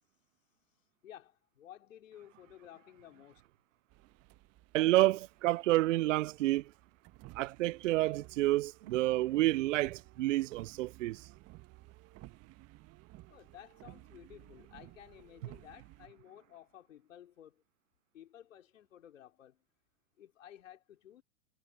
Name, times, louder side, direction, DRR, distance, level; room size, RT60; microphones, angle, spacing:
voice 1, 1.0-3.4 13.3-17.6 18.1-19.6 20.2-21.2, left 11 dB, 80° left, 4.4 m, -54 dB
sound 1, 3.9-16.1, right 19 dB, 40° right, 1.3 m, -56 dB
voice 2, 4.7-6.6 7.4-11.2, right 17 dB, 75° right, 0.5 m, -29 dB
hypercardioid pair, 100°, 38 cm